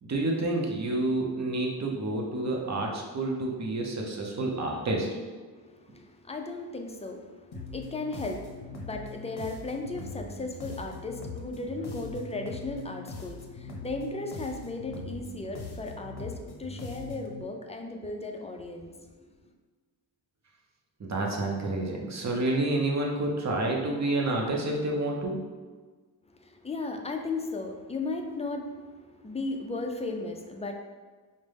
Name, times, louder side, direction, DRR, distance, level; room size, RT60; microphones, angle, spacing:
voice 1, 0.0-5.1 21.0-25.4, right 2 dB, 35° right, 0 dB, 0.8 m, -29 dB
voice 2, 5.5-19.5 26.3-30.7, left 3 dB, 15° left, 3 dB, 0.4 m, -36 dB
sound 1, 7.5-17.4, left 3 dB, 55° left, 0.7 m, -41 dB
5.1 x 2.2 x 3.4 m, 1.4 s
cardioid pair, 70°, 48 cm